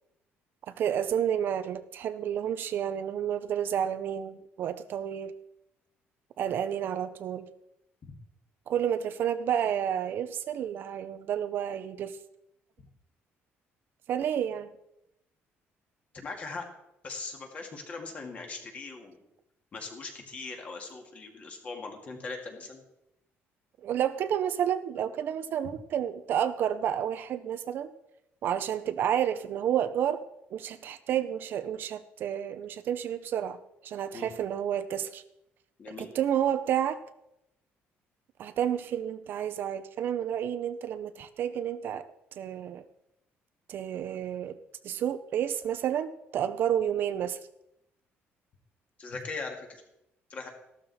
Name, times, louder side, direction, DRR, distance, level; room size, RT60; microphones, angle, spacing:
voice 1, 0.7-5.3 6.4-7.5 8.7-12.2 14.1-14.7 23.8-27.9 28.4-30.2 30.5-33.6 33.8-35.2 36.0-37.0 38.4-42.1 42.4-42.8 43.7-44.6 44.8-47.4, right 9 dB, 50° right, 12 dB, 0.6 m, -30 dB
voice 2, 16.1-16.7 17.0-19.3 19.7-22.8 34.1-34.3 35.8-36.1 49.0-49.8 50.3-50.5, left 3 dB, 30° left, 3 dB, 2.1 m, -40 dB
14.0 x 12.5 x 4.2 m, 0.85 s
cardioid pair, 180°, 5 cm